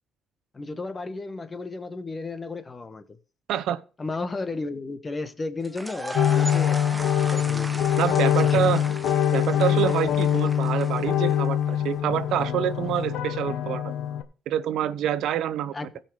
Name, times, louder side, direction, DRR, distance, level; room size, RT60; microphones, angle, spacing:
voice 1, 0.5-3.2 4.0-6.8 7.1-7.9 8.3-8.7 15.7-15.9, left 3 dB, 30° left, 1.4 m, -34 dB
voice 2, 3.5-3.8 8.0-8.8 9.3-13.9 14.5-15.9, right 10 dB, 85° right, 0.8 m, -26 dB
sound 1, 5.6-11.6, right 1 dB, 10° right, 1.1 m, -38 dB
sound 2, 6.1-14.2, left 9 dB, 85° left, 1.2 m, -24 dB
16.0 x 5.7 x 4.9 m
cardioid pair, 90°, 0 cm